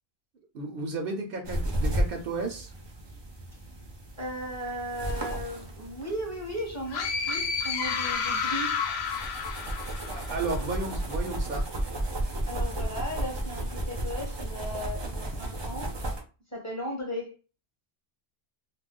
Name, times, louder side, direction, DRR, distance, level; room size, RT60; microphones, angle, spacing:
voice 1, 0.5-2.7 10.1-11.7, right 3 dB, 65° right, 0.7 m, -33 dB
sound 1, 1.4-16.2, right 1 dB, 35° right, 0.5 m, -34 dB
voice 2, 4.2-8.7 12.5-16.0 16.5-17.4, equal, 15° left, 0.8 m, -36 dB
sound 2, 6.9-10.6, left 6 dB, 80° left, 0.8 m, -30 dB
2.3 x 2.2 x 3.6 m
omnidirectional pair, 1.1 m